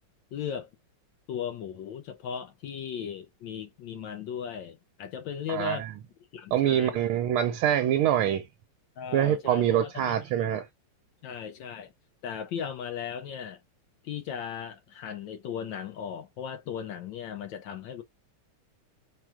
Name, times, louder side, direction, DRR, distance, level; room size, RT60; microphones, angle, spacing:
voice 1, 0.3-0.7 1.3-5.9 6.3-7.0 9.0-10.6 11.2-11.9 12.2-13.6 14.0-18.0, left 8 dB, 70° left, 1.2 m, -37 dB
voice 2, 5.5-5.9 6.5-8.4 9.1-10.7, right 10 dB, 80° right, 1.4 m, -25 dB
4.5 x 2.3 x 4.7 m
omnidirectional pair, 2.4 m